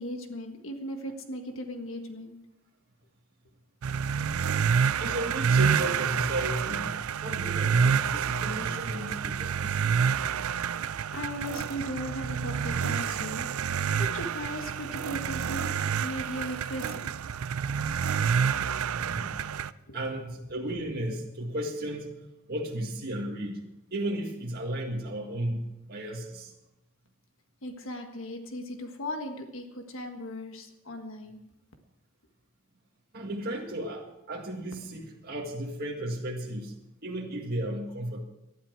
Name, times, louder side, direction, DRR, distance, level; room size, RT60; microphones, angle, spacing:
voice 1, 0.0-2.4 11.1-13.5 14.0-15.7 16.0-17.1 19.9-20.0 27.6-31.4, equal, 60° left, 5 dB, 1.6 m, -37 dB
sound 1, 3.8-19.7, right 7 dB, 75° right, 0.5 m, -28 dB
voice 2, 5.0-10.0 18.9-19.4 19.9-22.2 22.5-26.5 33.1-36.8 37.0-38.2, right 1 dB, 45° right, -2 dB, 1.9 m, -34 dB
19.0 x 12.0 x 4.6 m, 0.88 s
head